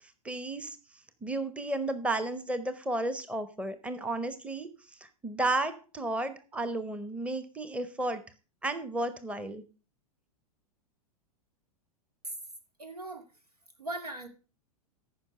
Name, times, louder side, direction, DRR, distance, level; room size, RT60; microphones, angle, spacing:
voice 1, 0.2-0.8 1.2-4.7 5.2-8.2 8.6-9.6, right 2 dB, 5° right, 12 dB, 0.9 m, -33 dB
voice 2, 12.8-13.2 13.8-14.3, right 2 dB, 85° right, 8 dB, 2.2 m, -38 dB
14.0 x 5.7 x 5.6 m, 0.34 s
figure-of-eight pair, 95°, 19 cm